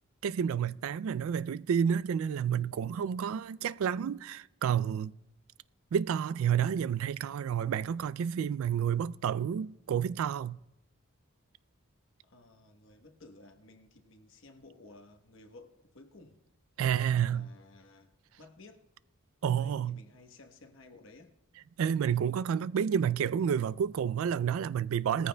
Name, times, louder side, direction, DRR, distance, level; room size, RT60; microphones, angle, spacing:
voice 1, 0.2-5.1 5.9-10.6 16.8-17.5 19.4-20.0 21.8-25.3, right 8 dB, 75° right, 0.3 m, -30 dB
voice 2, 12.3-16.4 16.8-18.8 19.6-21.3, left 2 dB, 65° left, 1.0 m, -55 dB
20.0 x 14.0 x 2.2 m
head